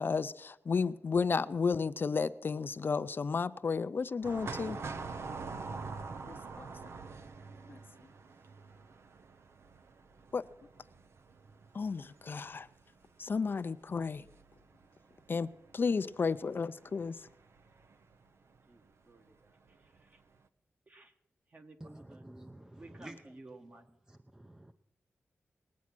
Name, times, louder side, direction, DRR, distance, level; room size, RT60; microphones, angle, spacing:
voice 1, 0.0-4.8 6.3-6.7 7.7-7.8 10.3-10.4 11.7-12.7 13.2-14.2 15.3-15.5 15.7-17.1, left 5 dB, 50° left, 13 dB, 0.4 m, -32 dB
sound 1, 4.2-18.3 18.5-18.6 19.7-20.0 20.3-20.4, right 4 dB, 70° right, 0.7 m, -46 dB
voice 2, 18.7-20.2 20.9-21.1 21.5-22.2 22.7-23.9, right 2 dB, 40° right, 5 dB, 1.5 m, -55 dB
voice 3, 21.8-23.2 24.1-24.7, right 1 dB, 15° right, 8 dB, 0.6 m, -50 dB
20.0 x 8.4 x 6.0 m, 0.92 s
wide cardioid pair, 95°, 5 cm